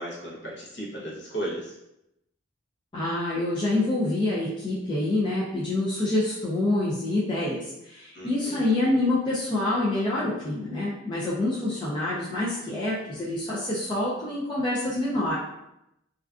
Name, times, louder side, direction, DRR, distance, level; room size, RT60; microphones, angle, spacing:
voice 1, 0.0-1.7 8.1-8.8, right 1 dB, 55° left, -6 dB, 0.7 m, -35 dB
voice 2, 2.9-15.4, left 2 dB, 25° left, -7 dB, 0.3 m, -26 dB
2.5 x 2.2 x 2.3 m, 0.85 s
head